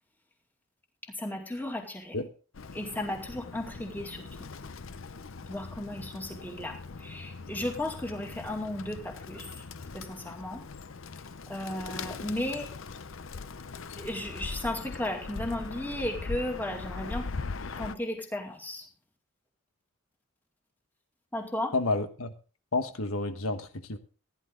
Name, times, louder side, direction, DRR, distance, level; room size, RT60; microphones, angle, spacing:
voice 1, 1.1-2.2 2.7-4.3 5.4-9.6 9.9-10.6 11.5-12.7 14.0-17.3 17.8-18.8 21.3-21.7, left 1 dB, 10° left, 2 dB, 2.3 m, -35 dB
Bird, 2.5-18.0, left 4 dB, 70° left, 0.7 m, -41 dB
voice 2, 21.7-22.3 22.7-24.0, left 3 dB, 85° left, 8 dB, 1.4 m, -30 dB
15.5 x 10.5 x 3.8 m, 0.36 s
head